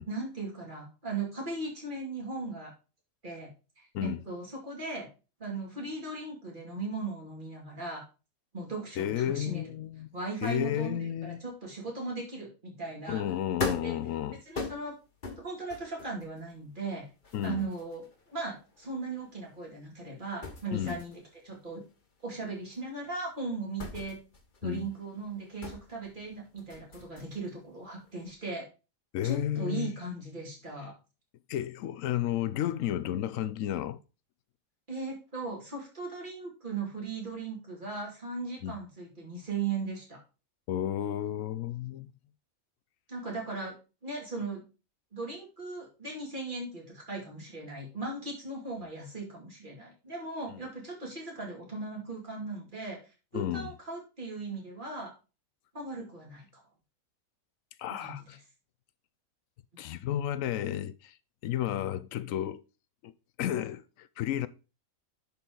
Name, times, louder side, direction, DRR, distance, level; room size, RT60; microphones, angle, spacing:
voice 1, 0.1-2.7 3.2-3.5 3.8-5.1 5.4-8.0 8.5-9.6 10.1-13.2 13.8-13.9 14.5-14.9 15.4-17.0 17.4-18.0 18.3-21.8 22.2-24.2 24.6-28.6 29.2-30.9 34.9-40.2 43.1-43.7 44.0-44.6 45.1-53.0 53.3-55.1 55.7-56.5 57.9-58.2, right 3 dB, 35° right, 2.7 m, -38 dB
voice 2, 9.0-10.1 10.4-11.4 13.1-14.4 17.3-17.6 20.7-21.0 24.6-24.9 29.1-29.9 31.5-34.0 38.6-38.8 40.7-42.1 50.5-50.6 53.3-53.7 57.8-58.4 59.8-61.1 61.4-62.6 63.0-63.1 63.4-64.5, left 11 dB, 75° left, 0.9 m, -32 dB
sound 1, 13.6-20.1 20.4-27.6 27.9-28.3, left 3 dB, 35° left, 1.2 m, -41 dB
10.5 x 4.5 x 3.8 m
omnidirectional pair, 1.4 m